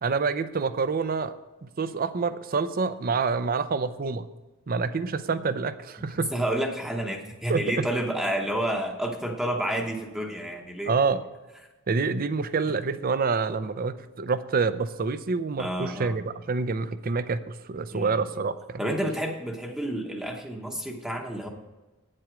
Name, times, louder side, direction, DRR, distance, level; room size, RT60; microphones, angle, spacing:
voice 1, 0.0-1.3 1.6-4.3 4.7-6.3 7.5-7.9 10.9-11.2 11.9-18.8, right 4 dB, 45° right, 13 dB, 0.5 m, -27 dB
voice 2, 6.3-10.9 15.6-16.2 17.9-18.2 18.8-21.5, right 1 dB, 5° right, 1 dB, 0.9 m, -30 dB
9.3 x 7.6 x 5.0 m, 1.1 s
head